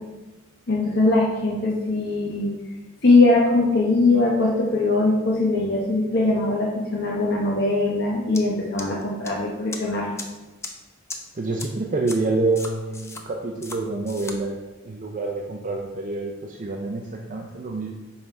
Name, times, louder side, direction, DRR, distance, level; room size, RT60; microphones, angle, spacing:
voice 1, 0.7-2.5 3.0-10.2, left 2 dB, 55° left, -5 dB, 1.0 m, -21 dB
sound 1, 8.3-8.4 8.8-9.3 9.7-9.8 10.2-10.3 10.6-10.7 11.1-11.2 11.6-11.7 12.1-12.2 12.6-13.2 13.6-13.8 14.1-14.4, left 3 dB, 15° left, 0.6 m, -35 dB
voice 2, 11.3-17.9, right 3 dB, 40° right, 1 dB, 0.5 m, -27 dB
5.6 x 5.5 x 4.5 m, 1.1 s
head